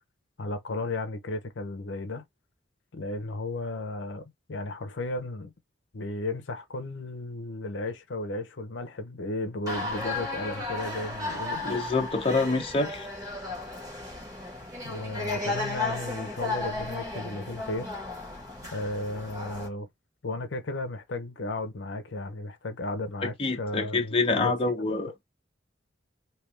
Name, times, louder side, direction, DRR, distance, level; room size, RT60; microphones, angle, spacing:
voice 1, 0.4-2.2 2.9-5.5 5.9-11.6 14.8-17.9 18.7-19.9 20.2-25.1, left 2 dB, 75° left, 0.7 m, -34 dB
sound 1, 9.7-19.7, left 2 dB, 20° right, 1.5 m, -34 dB
voice 2, 11.6-13.1 23.4-25.1, left 3 dB, 30° left, 0.8 m, -26 dB
3.4 x 2.8 x 3.1 m
head